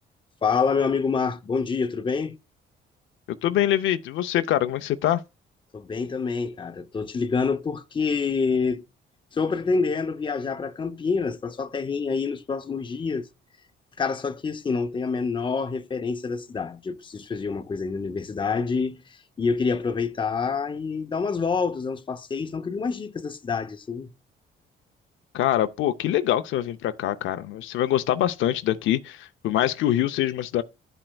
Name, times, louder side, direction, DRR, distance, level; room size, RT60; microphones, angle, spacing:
voice 1, 0.4-2.4 5.7-8.8 9.3-13.3 14.0-24.1, left 5 dB, 25° left, 0.6 m, -27 dB
voice 2, 3.4-5.2 25.3-30.6, left 12 dB, 80° left, 0.5 m, -24 dB
12.0 x 4.4 x 2.2 m
cardioid pair, 90°, 20 cm